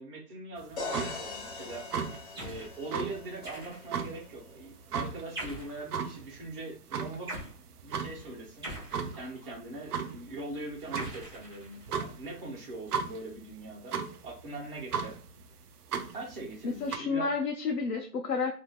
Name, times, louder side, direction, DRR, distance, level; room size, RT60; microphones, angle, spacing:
voice 1, 0.0-1.9 2.4-7.4 7.8-8.7 9.1-13.9 14.2-15.2 16.1-17.3, right 2 dB, 35° right, -4 dB, 1.1 m, -41 dB
sound 1, 0.6-17.0, right 6 dB, 75° right, 0.6 m, -38 dB
sound 2, 0.8-4.6, left 3 dB, 45° left, 1.0 m, -42 dB
sound 3, 2.4-2.8 3.4-4.0 5.4-5.8 7.3-7.6 8.6-9.5 11.0-12.0, right 1 dB, 15° right, 0.7 m, -42 dB
voice 2, 16.6-18.6, left 4 dB, 70° left, 1 dB, 0.8 m, -31 dB
3.5 x 2.7 x 2.2 m, 0.37 s
hypercardioid pair, 170°, 48 cm